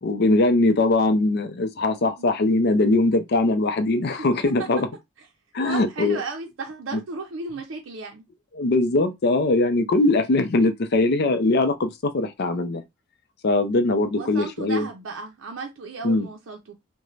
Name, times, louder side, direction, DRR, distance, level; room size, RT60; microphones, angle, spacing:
voice 1, 0.0-4.9 5.5-6.2 6.9-7.0 8.5-12.8 13.4-14.9 16.0-16.3, left 2 dB, 55° left, 0.5 m, -21 dB
voice 2, 5.6-8.2 14.1-16.8, right 3 dB, 80° right, 0.5 m, -35 dB
2.5 x 2.1 x 3.1 m
head